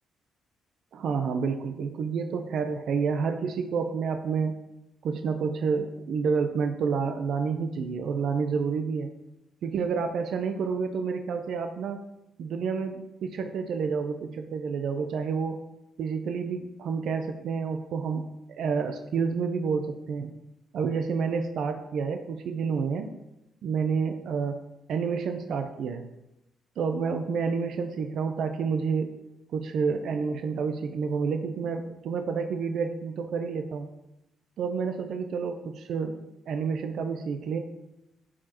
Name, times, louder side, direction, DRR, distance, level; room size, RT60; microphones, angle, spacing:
voice 1, 0.9-4.5 5.0-9.1 9.6-12.0 12.4-15.6 16.0-20.3 20.7-23.1 23.6-24.6 24.9-26.0 26.8-29.1 29.5-33.9 34.6-36.2 36.5-37.6, right 5 dB, 70° right, 6 dB, 0.6 m, -29 dB
14.0 x 4.8 x 2.9 m, 0.91 s
cardioid pair, 90°, 0 cm